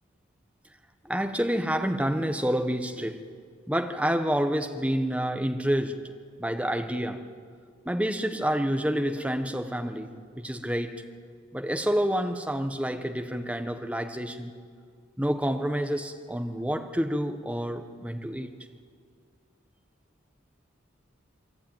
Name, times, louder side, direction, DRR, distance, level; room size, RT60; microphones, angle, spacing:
voice 1, 1.0-3.2 3.7-6.1 6.4-7.2 7.8-11.0 11.5-14.5 15.2-18.5, equal, 5° right, 5 dB, 1.3 m, -28 dB
27.5 x 22.0 x 9.2 m, 2.1 s
head